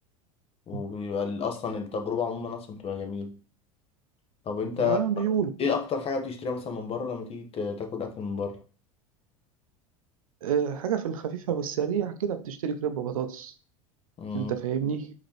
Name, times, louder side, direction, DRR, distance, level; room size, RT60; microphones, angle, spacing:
voice 1, 0.7-3.3 4.4-5.2 5.6-8.6 14.2-14.6, left 5 dB, 35° left, 1.0 m, -31 dB
voice 2, 4.8-5.5 10.4-13.5 14.3-15.1, right 8 dB, 85° right, 0.5 m, -29 dB
5.1 x 3.0 x 3.1 m
hypercardioid pair, 90°, 17 cm